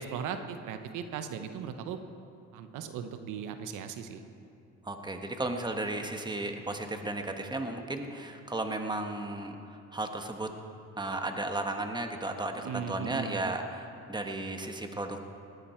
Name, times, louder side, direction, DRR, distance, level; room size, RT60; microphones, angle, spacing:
voice 1, 0.0-2.0 2.5-4.3 12.6-13.4, right 7 dB, 90° right, 8 dB, 1.0 m, -38 dB
voice 2, 4.8-10.5 11.0-15.2, right 2 dB, 15° right, 5 dB, 1.4 m, -34 dB
19.5 x 12.0 x 4.5 m, 2.6 s
cardioid pair, 90°, 30 cm